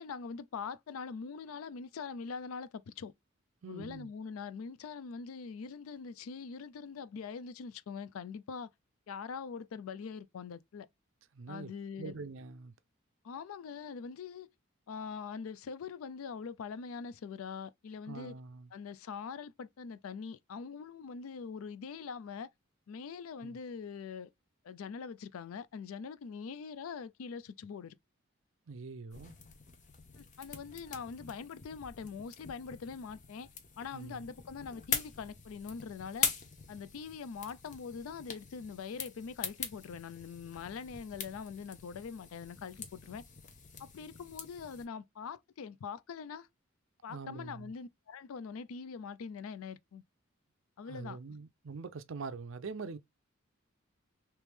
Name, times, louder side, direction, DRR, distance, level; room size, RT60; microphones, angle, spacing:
voice 1, 0.0-3.1 3.7-8.7 9.1-10.9 11.5-12.2 13.2-14.5 14.9-18.3 18.7-22.5 22.9-24.3 24.6-27.9 30.2-33.5 33.8-36.3 36.7-43.2 43.8-46.5 47.0-50.0 50.8-51.2, left 5 dB, 90° left, 0.4 m, -43 dB
voice 2, 3.6-4.1 11.3-11.7 12.0-12.7 18.1-18.7 23.4-23.6 28.7-29.4 33.9-34.3 47.1-47.7 50.9-53.0, right 4 dB, 65° right, 0.5 m, -44 dB
sound 1, 29.1-44.9, left 6 dB, 35° left, 0.8 m, -42 dB
3.2 x 3.0 x 3.3 m
head